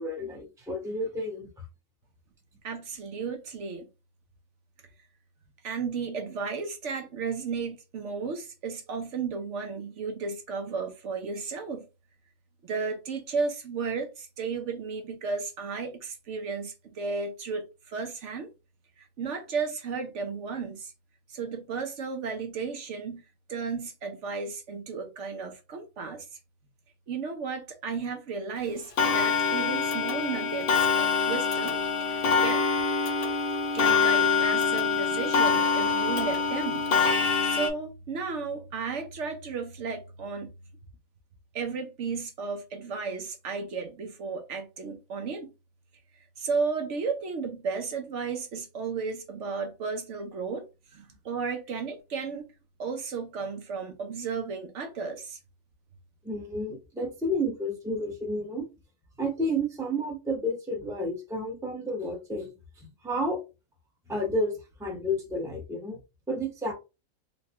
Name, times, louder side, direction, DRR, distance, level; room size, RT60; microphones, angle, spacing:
voice 1, 0.0-1.5 56.2-58.7 59.2-62.5 62.8-63.4 64.1-64.5 64.8-66.0 66.3-66.7, equal, 5° right, 0.7 m, -31 dB
voice 2, 2.6-3.9 5.6-11.9 12.6-18.5 19.0-20.9 21.3-23.2 23.5-26.3 27.1-32.6 33.7-36.9 37.4-40.5 41.5-45.5 46.4-50.6 50.9-52.5 52.8-55.4, right 5 dB, 65° right, 0.9 m, -34 dB
Clock, 29.0-37.7, left 5 dB, 55° left, 0.7 m, -25 dB
4.0 x 2.2 x 2.8 m
omnidirectional pair, 1.4 m